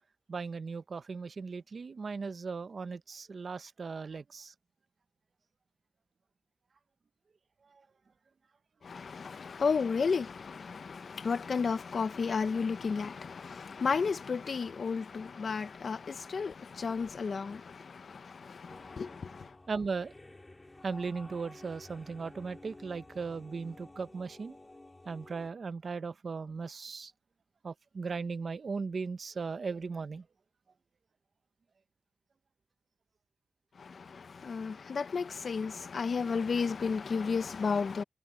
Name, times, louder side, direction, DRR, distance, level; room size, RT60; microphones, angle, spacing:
voice 1, 0.3-4.5 19.7-20.1 20.8-24.6 25.1-27.1 27.6-30.2, right 4 dB, 50° right, 0.7 m, -37 dB
voice 2, 8.8-19.5 33.8-38.0, left 5 dB, 55° left, 0.5 m, -33 dB
sound 1, 18.7-25.5, left 2 dB, 20° left, 2.0 m, -52 dB
wide cardioid pair, 175°, 0 cm